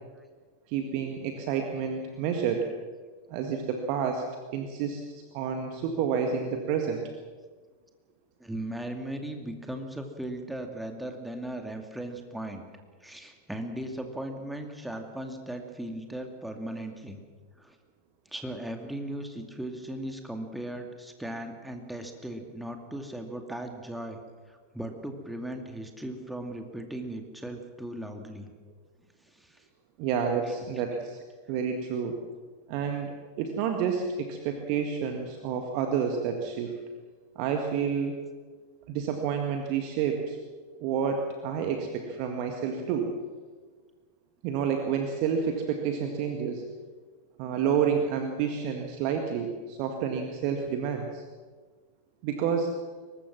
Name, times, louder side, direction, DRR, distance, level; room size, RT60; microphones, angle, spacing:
voice 1, 0.7-2.7 3.3-4.3 4.5-7.0 30.0-31.2 31.5-32.2 32.7-36.8 37.4-38.2 38.9-40.4 40.8-43.1 44.4-46.6 47.4-51.2 52.2-52.8, right 7 dB, 45° right, 4 dB, 1.9 m, -29 dB
voice 2, 8.4-12.6 13.0-17.2 17.6-17.8 18.3-24.2 24.5-28.5 29.3-29.6, right 1 dB, 5° right, 4 dB, 2.4 m, -37 dB
23.0 x 20.0 x 6.1 m, 1.5 s
figure-of-eight pair, 90°, 0 cm